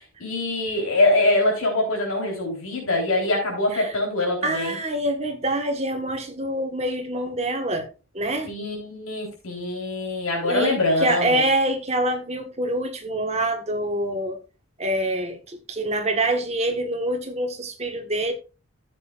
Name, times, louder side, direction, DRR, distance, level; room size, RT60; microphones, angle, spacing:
voice 1, 0.2-4.8 8.5-11.4, left 2 dB, 75° left, 3.7 m, -23 dB
voice 2, 4.4-7.9 8.1-8.5 10.4-14.4 14.8-18.3, right 1 dB, 30° right, 1.4 m, -25 dB
13.5 x 7.5 x 2.4 m
head